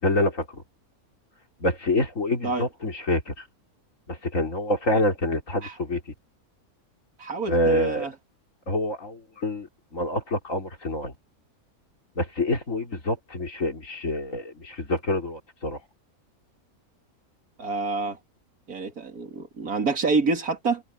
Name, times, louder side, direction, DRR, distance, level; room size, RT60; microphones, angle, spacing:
voice 1, 0.0-0.4 1.6-3.3 4.1-6.0 7.5-8.1 8.7-9.7 9.9-11.1 12.2-15.8, left 1 dB, 60° left, 4.4 m, -26 dB
voice 2, 7.2-8.1 17.6-18.2 18.7-20.8, right 3 dB, 75° right, 2.9 m, -27 dB
omnidirectional pair, 1.6 m